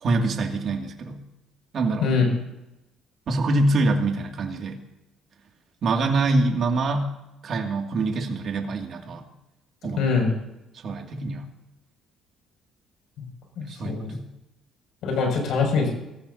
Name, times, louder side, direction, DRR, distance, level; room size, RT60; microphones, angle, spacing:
voice 1, 0.0-1.2 1.7-2.0 3.3-4.8 5.8-7.1 7.4-9.3 9.8-10.0 10.8-11.5 13.6-14.3, right 2 dB, 50° right, 2 dB, 2.4 m, -25 dB
voice 2, 10.0-10.3 13.6-14.1 15.0-15.9, left 5 dB, 70° left, 1 dB, 6.7 m, -23 dB
23.0 x 14.5 x 2.8 m, 0.94 s
cardioid pair, 110°, 0 cm